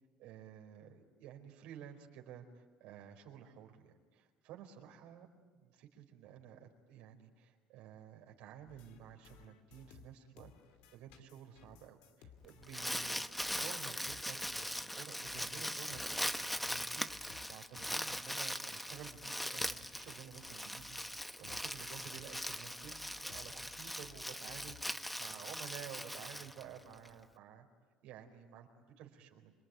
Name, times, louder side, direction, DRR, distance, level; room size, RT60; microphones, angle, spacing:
voice 1, 0.2-5.3 5.6-10.5 10.9-27.7 28.0-29.5, right 9 dB, 75° right, 1 dB, 4.6 m, -53 dB
sound 1, 8.7-13.8 14.1-25.2, left 8 dB, 85° left, 2.6 m, -61 dB
Crumpling crinkling, 12.4-27.1, equal, 5° left, 0.9 m, -41 dB
26.5 x 23.5 x 9.4 m, 1.3 s
cardioid pair, 110°, 2 cm